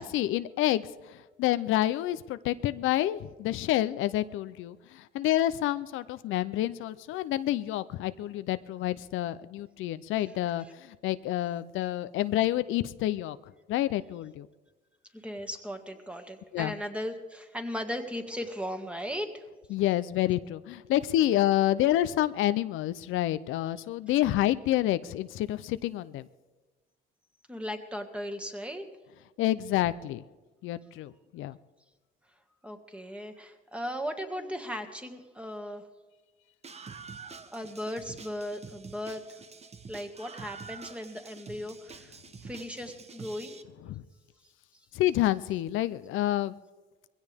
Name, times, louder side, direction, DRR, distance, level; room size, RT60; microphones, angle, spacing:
voice 1, 0.0-13.4 13.7-14.5 16.5-16.7 19.7-26.3 29.4-30.2 30.6-31.6 43.8-44.0 44.9-46.5, left 14 dB, 85° left, 14 dB, 0.5 m, -28 dB
voice 2, 15.1-19.4 27.5-28.9 32.6-35.8 37.5-39.2 39.9-42.2 42.4-43.7, equal, 5° right, 5 dB, 1.9 m, -37 dB
Screaming, 36.6-43.6, right 5 dB, 35° right, 1.1 m, -47 dB
21.0 x 16.5 x 3.5 m, 1.2 s
cardioid pair, 90°, 20 cm